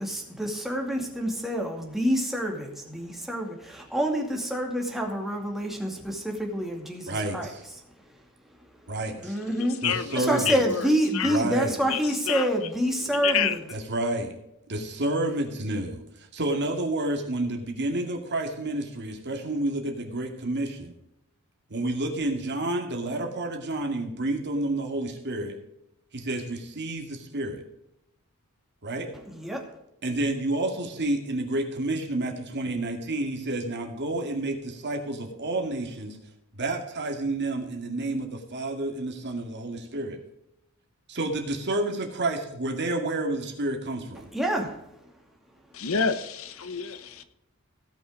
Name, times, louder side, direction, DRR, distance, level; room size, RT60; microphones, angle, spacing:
voice 1, 0.0-7.5 9.2-9.8 10.1-13.6 29.3-29.6 44.3-44.8, equal, ahead, 1 dB, 2.3 m, -27 dB
voice 2, 7.1-7.5 8.9-9.4 9.8-10.6 11.3-11.7 13.7-14.3 14.7-20.9 21.7-25.6 26.1-27.6 28.8-29.1 30.0-36.2 36.6-40.2 41.1-44.3, right 2 dB, 55° right, 3 dB, 2.2 m, -30 dB
voice 3, 9.5-10.2 10.5-11.4 11.8-12.5 13.0-13.6 45.7-47.2, left 7 dB, 70° left, 12 dB, 0.9 m, -29 dB
17.0 x 6.1 x 5.1 m, 0.84 s
head